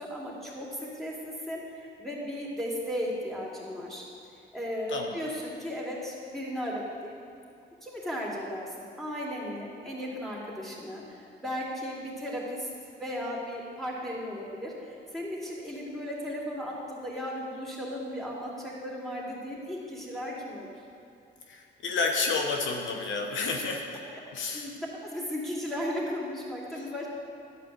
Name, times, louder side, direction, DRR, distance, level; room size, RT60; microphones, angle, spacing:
voice 1, 0.0-4.0 4.5-7.2 7.8-12.7 13.0-20.7 24.2-24.7 25.0-27.1, equal, ahead, -5 dB, 3.0 m, -36 dB
voice 2, 4.9-5.2 21.5-24.0 24.3-24.7 26.7-26.8, left 4 dB, 75° left, 2 dB, 1.1 m, -30 dB
12.0 x 5.1 x 8.0 m, 2.6 s
cardioid pair, 90°, 20 cm